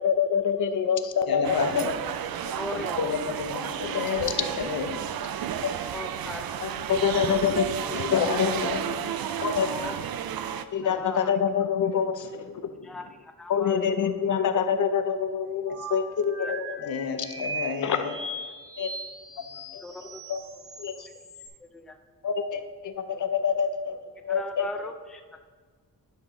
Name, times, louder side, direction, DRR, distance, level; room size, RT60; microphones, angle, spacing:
voice 1, 0.0-1.9 2.4-2.8 3.7-4.3 5.6-5.8 6.6-8.5 9.4-9.7 10.7-12.7 13.5-17.3 17.8-18.0 18.8-18.9 19.7-19.8 20.3-20.4 20.8-21.1 22.2-24.0 24.2-24.7, left 7 dB, 60° left, 9 dB, 0.7 m, -26 dB
voice 2, 1.3-1.9 3.0-4.3 4.6-5.0 7.9-9.1 16.8-18.1, left 6 dB, 85° left, 5 dB, 1.0 m, -31 dB
sound 1, 1.4-10.6, right 9 dB, 90° right, 0.5 m, -32 dB
voice 3, 2.5-3.0 3.8-4.3 5.9-6.5 6.9-7.5 9.6-10.0 10.8-11.4 12.8-14.1 16.4-16.5 19.8-20.7 20.9-21.0 21.6-22.0 24.3-25.4, left 2 dB, ahead, 6 dB, 0.4 m, -39 dB
sound 2, 15.7-21.5, right 2 dB, 65° right, 2.5 m, -39 dB
10.5 x 4.1 x 6.2 m, 1.5 s
wide cardioid pair, 160°, 34 cm